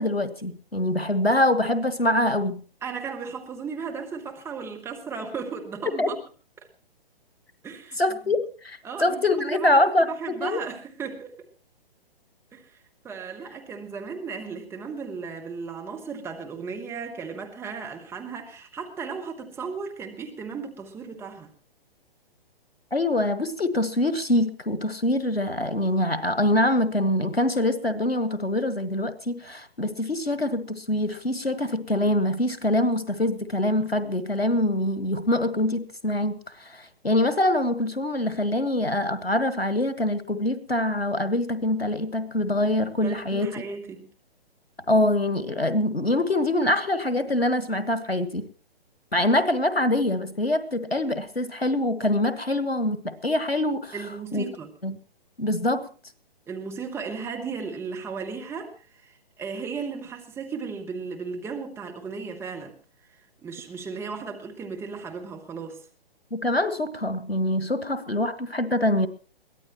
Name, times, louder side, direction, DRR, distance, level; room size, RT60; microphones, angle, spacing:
voice 1, 0.0-2.6 6.0-6.1 8.0-10.6 22.9-43.5 44.9-48.4 49.1-53.9 54.3-54.4 54.8-54.9 55.4-55.9 66.3-69.1, left 1 dB, 85° left, 1.6 m, -24 dB
voice 2, 2.8-6.2 7.6-8.3 8.8-11.4 12.5-12.8 13.0-21.5 43.0-44.1 53.9-54.7 56.5-62.8 63.4-65.9, right 5 dB, 10° right, 1.3 m, -35 dB
22.0 x 15.5 x 3.1 m
figure-of-eight pair, 130°, 30 cm